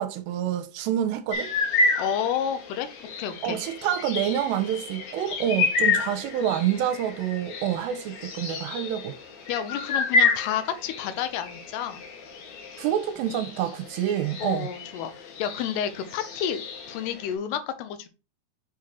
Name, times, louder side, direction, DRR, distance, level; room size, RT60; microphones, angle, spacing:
voice 1, 0.0-1.5 3.4-9.2 12.8-14.7, right 10 dB, 85° right, 2.8 m, -27 dB
sound 1, 1.3-17.3, left 4 dB, 55° left, 2.3 m, -30 dB
voice 2, 2.0-2.9 3.2-3.6 9.5-12.0 14.4-18.1, left 9 dB, 75° left, 2.8 m, -30 dB
7.5 x 3.8 x 4.4 m
omnidirectional pair, 5.1 m